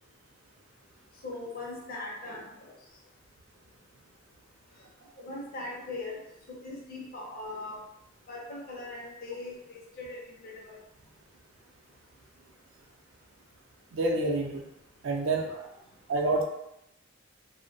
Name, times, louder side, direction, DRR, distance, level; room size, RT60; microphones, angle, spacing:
voice 1, 1.2-2.7 5.2-6.2 6.5-7.8 8.3-10.8, left 2 dB, 50° left, -3 dB, 0.5 m, -40 dB
voice 2, 13.9-14.6 15.0-15.7 16.1-16.4, right 2 dB, 75° right, 1 dB, 0.4 m, -28 dB
2.5 x 2.1 x 2.6 m, 0.83 s
head